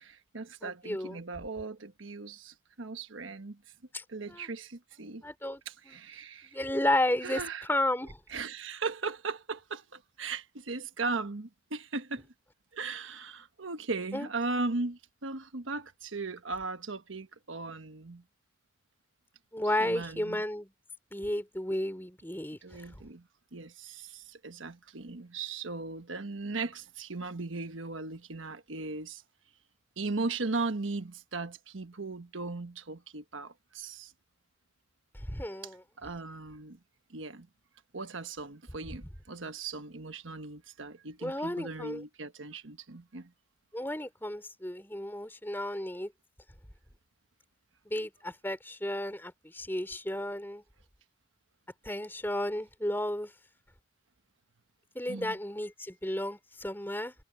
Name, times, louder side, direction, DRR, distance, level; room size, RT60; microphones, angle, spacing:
voice 1, 0.0-3.6 4.1-5.2 5.7-6.6 7.2-7.7 8.3-12.3 12.7-18.2 19.8-20.4 22.6-29.2 30.0-34.1 36.0-36.8 37.1-37.5 37.9-43.3 55.1-55.4, right 3 dB, 80° right, 1.3 m, -38 dB
voice 2, 0.6-1.2 3.9-4.5 5.2-6.0 6.5-7.4 7.7-8.2 14.1-14.3 19.5-20.7 21.1-23.0 35.1-35.8 41.2-42.0 43.7-46.1 47.9-50.6 51.8-53.3 54.9-57.1, left 1 dB, 10° left, 3.8 m, -33 dB
head